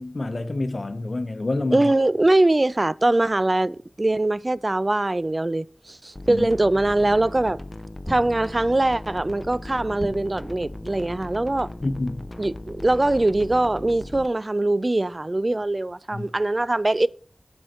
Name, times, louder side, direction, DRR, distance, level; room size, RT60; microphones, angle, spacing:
voice 1, 0.0-1.9 6.3-6.5 11.8-12.2 16.1-16.3, left 2 dB, 60° left, 0.8 m, -27 dB
voice 2, 1.7-7.6 8.1-11.7 12.4-17.1, right 2 dB, 35° right, 0.3 m, -22 dB
sound 1, 6.2-14.3, left 1 dB, 30° left, 0.5 m, -38 dB
sound 2, 8.0-8.8 10.0-10.7, equal, 5° left, 1.3 m, -37 dB
7.7 x 6.4 x 4.3 m
wide cardioid pair, 65°, 0 cm